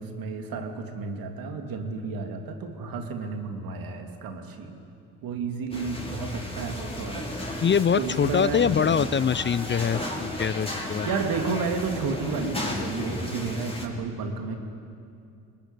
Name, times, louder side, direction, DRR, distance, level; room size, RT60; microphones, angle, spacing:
voice 1, 0.0-4.8 5.2-7.2 8.0-8.7 11.0-14.6, right 4 dB, 70° right, 4 dB, 3.0 m, -31 dB
sound 1, 5.7-13.9, left 1 dB, 15° left, 6.2 m, -34 dB
voice 2, 7.6-11.1, left 7 dB, 30° left, 18 dB, 0.6 m, -24 dB
24.0 x 20.5 x 9.8 m, 2.5 s
hypercardioid pair, 50°, 37 cm